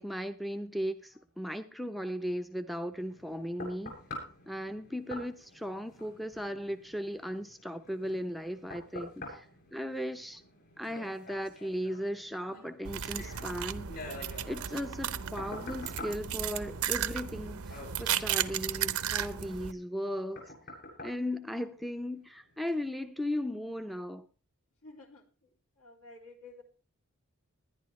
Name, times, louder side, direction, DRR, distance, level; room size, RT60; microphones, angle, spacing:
voice 1, 0.0-4.0 4.5-10.4 10.8-13.9 14.5-20.5 21.0-24.3, equal, ahead, 0.7 m, -37 dB
sound 1, 2.9-22.2 22.7-22.8, left 2 dB, 50° left, 7.7 m, -48 dB
voice 2, 9.0-9.8 24.8-25.5 25.8-26.6, left 2 dB, 70° left, 3.0 m, -54 dB
sound 2, 12.9-19.7, right 10 dB, 70° right, 0.8 m, -35 dB
20.0 x 11.0 x 3.2 m
head